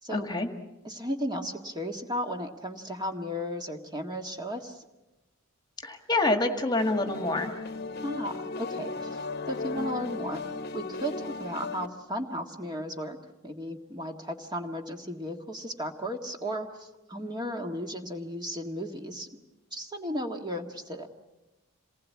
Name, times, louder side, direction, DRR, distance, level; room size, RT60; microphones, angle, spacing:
voice 1, 0.1-0.5 5.8-7.6, left 2 dB, 20° left, 6 dB, 1.7 m, -27 dB
voice 2, 0.8-4.8 8.0-9.2 9.5-10.4 10.7-13.2 13.4-19.4 19.7-21.1, equal, 20° right, 4 dB, 1.7 m, -35 dB
sound 1, 6.8-11.9, left 3 dB, 50° left, 1.1 m, -36 dB
27.5 x 20.0 x 8.5 m, 1.0 s
head